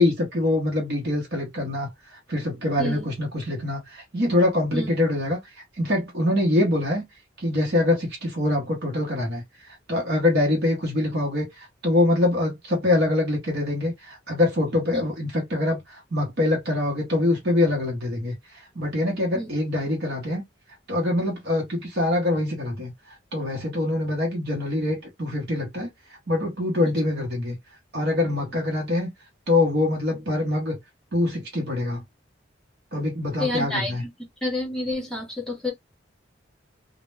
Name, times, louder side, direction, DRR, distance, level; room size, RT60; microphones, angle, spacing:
voice 1, 0.0-5.4 5.8-7.0 7.4-20.4 20.9-25.9 26.3-27.6 27.9-29.1 29.5-30.8 31.1-32.0 32.9-34.0, left 2 dB, 55° right, 0.8 m, -24 dB
voice 2, 33.4-34.1 34.4-35.7, left 1 dB, 5° left, 0.9 m, -28 dB
2.1 x 2.0 x 3.1 m
head